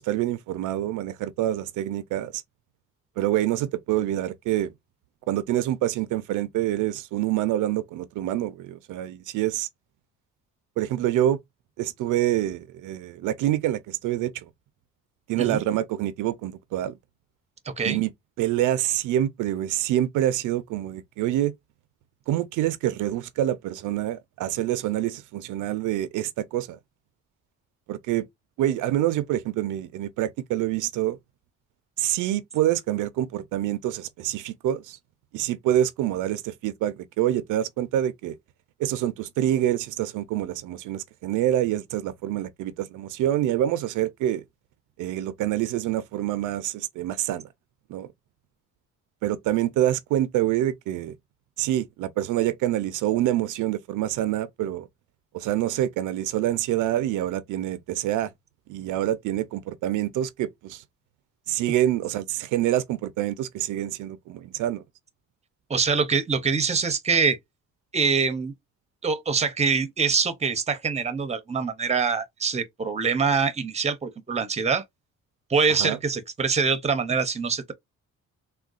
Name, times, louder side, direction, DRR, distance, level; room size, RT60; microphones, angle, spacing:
voice 1, 0.0-2.4 3.2-4.7 5.3-9.7 10.8-11.4 11.8-14.5 15.3-16.9 17.8-18.1 18.4-21.5 22.3-26.8 27.9-28.2 28.6-31.2 32.0-35.0 35.3-38.3 38.8-44.4 45.0-47.5 47.9-48.1 49.2-51.1 51.6-54.9 55.3-58.3 58.7-60.8 61.5-64.8 75.7-76.0, right 13 dB, 85° right, 0.5 m, -26 dB
voice 2, 17.7-18.0 65.7-67.4 67.9-68.5 69.0-74.8 75.5-77.7, right 5 dB, 20° right, 0.7 m, -24 dB
3.6 x 2.2 x 2.3 m
cardioid pair, 90°, 30 cm